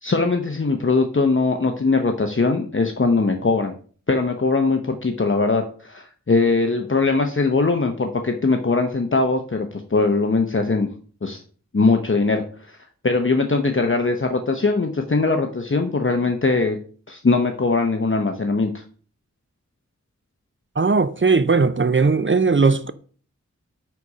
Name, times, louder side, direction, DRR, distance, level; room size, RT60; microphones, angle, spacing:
voice 1, 0.0-3.7 4.1-10.9 11.2-11.4 11.7-12.4 12.7-12.8 13.0-16.8 17.1-18.8, left 3 dB, 45° left, 0.9 m, -21 dB
voice 2, 20.8-22.9, right 4 dB, 40° right, 0.6 m, -18 dB
9.4 x 4.1 x 4.9 m
wide cardioid pair, 50°, 29 cm